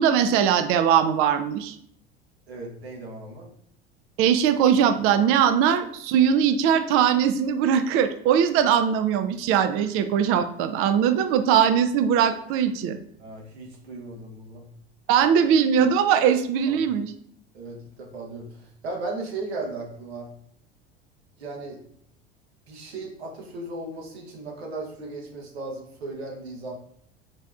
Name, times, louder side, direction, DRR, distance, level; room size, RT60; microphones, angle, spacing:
voice 1, 0.0-1.8 4.2-13.0 15.1-17.1, right 8 dB, 45° right, 10 dB, 0.5 m, -21 dB
voice 2, 2.5-3.5 13.2-14.7 16.7-16.8 17.5-20.3 21.4-21.8 22.7-26.7, right 2 dB, 80° right, 0 dB, 1.1 m, -36 dB
4.0 x 3.2 x 2.4 m, 0.65 s
hypercardioid pair, 75°, 31 cm